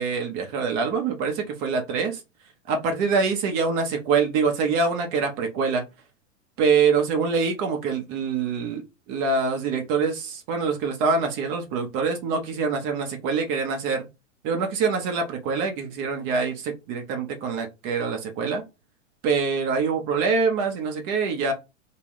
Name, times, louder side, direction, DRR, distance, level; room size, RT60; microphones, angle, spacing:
voice 1, 0.0-2.2 2.7-5.8 6.6-14.1 14.4-18.6 19.2-21.5, right 5 dB, 35° right, 0.7 m, -25 dB
3.5 x 2.2 x 3.0 m
hypercardioid pair, 110°, 38 cm